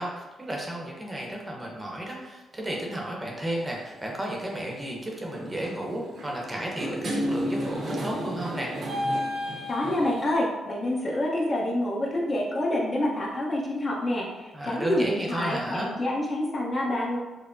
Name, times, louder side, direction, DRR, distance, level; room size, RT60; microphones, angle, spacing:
voice 1, 0.0-8.7 14.5-16.0, right 1 dB, 15° right, -2 dB, 0.8 m, -33 dB
sound 1, 3.4-3.7 4.6-4.9 5.2-10.3, equal, 60° right, 0.8 m, -32 dB
voice 2, 9.7-17.2, left 1 dB, 35° left, -3 dB, 0.8 m, -27 dB
5.4 x 2.1 x 2.6 m, 1.2 s
cardioid pair, 80°, 0 cm